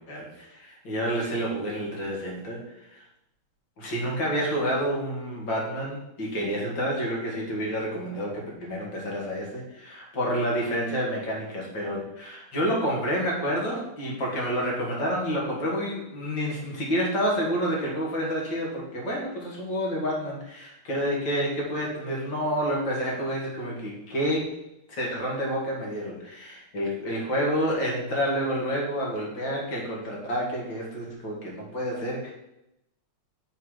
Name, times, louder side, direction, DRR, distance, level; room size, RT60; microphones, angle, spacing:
voice 1, 0.1-3.0 3.8-24.5 24.9-32.3, equal, 60° left, -2 dB, 2.8 m, -29 dB
6.8 x 4.8 x 6.5 m, 0.87 s
omnidirectional pair, 2.4 m